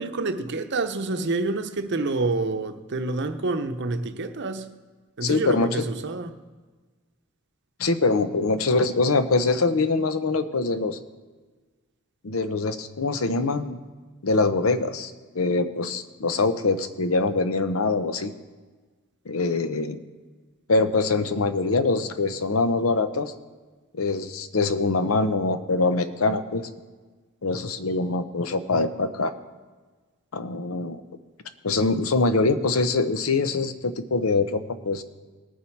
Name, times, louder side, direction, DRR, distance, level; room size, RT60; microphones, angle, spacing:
voice 1, 0.0-4.7 5.2-6.3, right 3 dB, 55° right, 0.8 m, -28 dB
voice 2, 5.2-5.7 7.8-11.0 12.2-13.8 14.2-18.3 19.3-20.0 20.7-23.3 23.9-26.7 27.4-29.3 30.3-31.0 31.6-35.0, left 3 dB, 80° left, 0.8 m, -24 dB
19.0 x 7.3 x 4.6 m
head